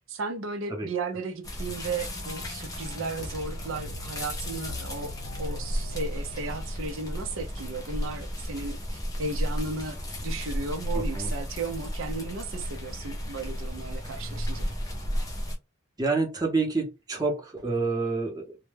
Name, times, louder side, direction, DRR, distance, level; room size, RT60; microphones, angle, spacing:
voice 1, 0.1-5.1 5.4-14.7, right 3 dB, 80° right, 0.5 m, -35 dB
sound 1, 1.4-15.6, equal, 20° left, 0.5 m, -34 dB
sound 2, 1.7-7.7, left 2 dB, 85° left, 0.6 m, -46 dB
voice 2, 10.9-11.3 16.0-18.6, right 3 dB, 20° right, 0.7 m, -28 dB
2.1 x 2.1 x 3.2 m
head